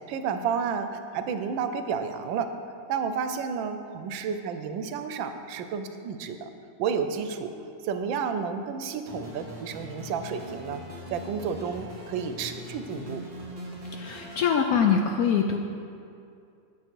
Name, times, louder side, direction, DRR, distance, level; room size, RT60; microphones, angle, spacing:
voice 1, 0.1-0.9 1.1-2.5 2.9-6.5 6.8-7.5 7.8-10.8 11.1-13.2, right 6 dB, 90° right, 8 dB, 1.4 m, -31 dB
sound 1, 9.1-14.4, equal, 30° right, 1.4 m, -42 dB
voice 2, 13.9-15.6, left 7 dB, 75° left, 3 dB, 0.8 m, -23 dB
8.4 x 7.8 x 4.5 m, 2.4 s
omnidirectional pair, 2.0 m